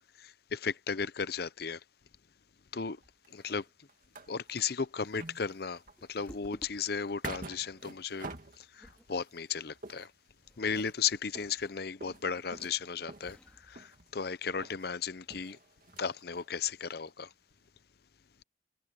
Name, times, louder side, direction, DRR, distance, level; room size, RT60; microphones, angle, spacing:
voice 1, 0.2-1.8 2.7-3.0 3.3-3.7 4.3-5.8 6.1-8.3 8.6-10.1 10.6-15.6 16.0-17.3, left 6 dB, 60° left, 0.7 m, -35 dB
sound 1, 2.7-4.8 5.1-9.4 9.7-14.3 14.6-14.9 15.2-16.8 17.1-17.2 17.5-17.6, right 2 dB, 50° right, 2.4 m, -48 dB
sound 2, 4.3-15.6, equal, 5° left, 3.9 m, -60 dB
head